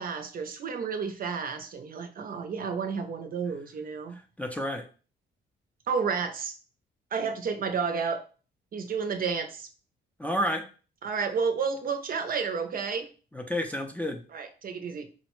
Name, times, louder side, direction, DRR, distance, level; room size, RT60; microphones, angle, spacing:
voice 1, 0.0-4.2 5.9-6.5 7.1-8.2 8.7-9.7 11.0-13.1 14.3-15.1, right 5 dB, 45° right, 7 dB, 0.5 m, -31 dB
voice 2, 4.1-4.9 10.2-10.7 13.3-14.2, equal, 5° left, 3 dB, 0.4 m, -31 dB
3.9 x 2.0 x 3.0 m, 0.37 s
cardioid pair, 90°, 20 cm